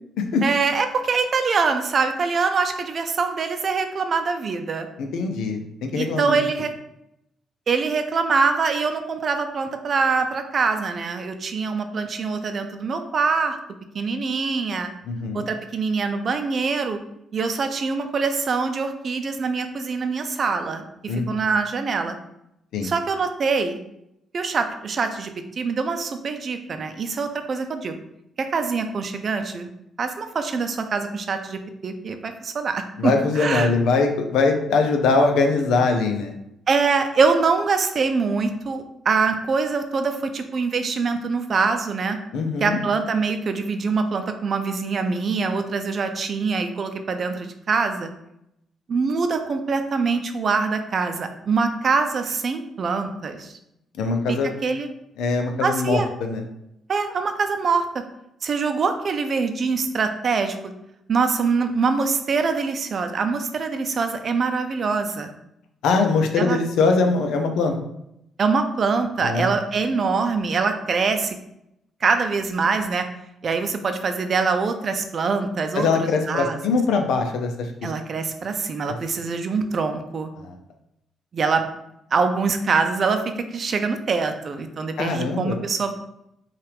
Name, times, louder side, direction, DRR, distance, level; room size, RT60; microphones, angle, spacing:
voice 1, 0.4-4.9 6.0-6.7 7.7-13.6 13.9-14.9 15.3-17.0 17.3-22.1 22.8-23.8 24.3-28.0 28.4-29.7 30.0-33.7 36.7-42.2 42.6-48.1 48.9-53.6 54.3-54.9 55.6-56.1 56.9-58.0 58.4-60.6 61.1-65.3 66.4-66.6 68.4-71.4 72.0-73.1 73.4-76.6 77.8-80.3 81.3-81.6 82.1-85.9, right 4 dB, 50° right, 7 dB, 0.5 m, -24 dB
voice 2, 5.0-6.4 15.1-15.5 21.1-21.4 22.7-22.9 33.0-36.3 42.3-42.8 54.0-54.5 55.2-56.4 65.8-67.7 69.2-69.5 75.7-77.9 80.4-80.6 85.0-85.6, left 4 dB, 85° left, 4 dB, 0.7 m, -22 dB
5.6 x 2.5 x 3.4 m, 0.81 s
cardioid pair, 90°, 0 cm